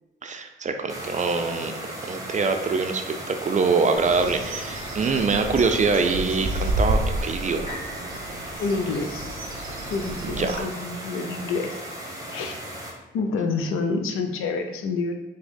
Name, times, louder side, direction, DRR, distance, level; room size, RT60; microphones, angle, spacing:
voice 1, 0.2-1.7 2.0-7.8 10.2-10.7, right 4 dB, 35° right, 6 dB, 0.4 m, -24 dB
sound 1, 0.9-12.9, right 1 dB, 15° right, 1.0 m, -37 dB
Bird, 4.0-10.6, right 1 dB, 90° right, 0.5 m, -31 dB
sound 2, 7.7-11.6 12.2-12.3, equal, 35° left, 1.3 m, -46 dB
voice 2, 8.6-9.2 9.9-11.8 12.3-12.6 13.1-15.1, left 4 dB, 85° left, 5 dB, 0.4 m, -28 dB
3.4 x 2.1 x 3.5 m, 1.1 s
supercardioid pair, 55°, 21 cm